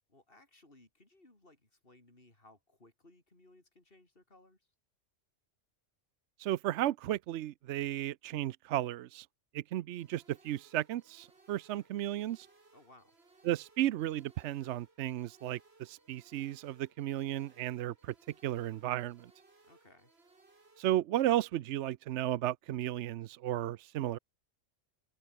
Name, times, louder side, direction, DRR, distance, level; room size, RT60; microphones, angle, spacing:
voice 1, 0.1-4.7 12.7-13.1 19.6-20.1, left 2 dB, 50° left, 5.4 m, -62 dB
voice 2, 6.4-9.3 9.5-12.5 13.4-18.1 18.4-19.3 20.8-24.2, right 13 dB, 75° right, 0.9 m, -34 dB
sound 1, 10.0-21.0, right 3 dB, 60° right, 3.1 m, -64 dB
open air
omnidirectional pair, 1.2 m